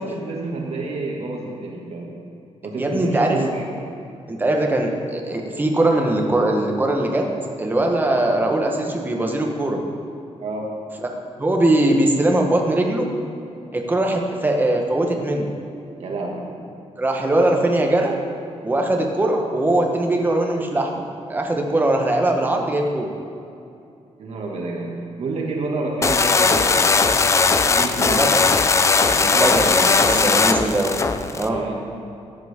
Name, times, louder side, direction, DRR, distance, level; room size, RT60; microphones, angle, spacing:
voice 1, 0.0-2.1 2.6-3.7 10.4-10.7 16.0-16.5 24.2-27.1 27.6-28.2 29.1-30.3 31.5-31.8, right 2 dB, 60° right, -1 dB, 2.0 m, -29 dB
voice 2, 2.8-3.4 4.3-7.3 7.6-9.8 11.4-13.1 13.7-15.5 17.0-18.2 18.6-21.0 21.3-23.1 28.0-28.4 29.2-31.0 31.3-31.6, right 1 dB, 15° right, 1 dB, 1.2 m, -21 dB
sound 1, 26.0-31.5, left 4 dB, 25° left, 0.4 m, -18 dB
14.0 x 9.0 x 3.6 m, 2.6 s
wide cardioid pair, 150°, 12 cm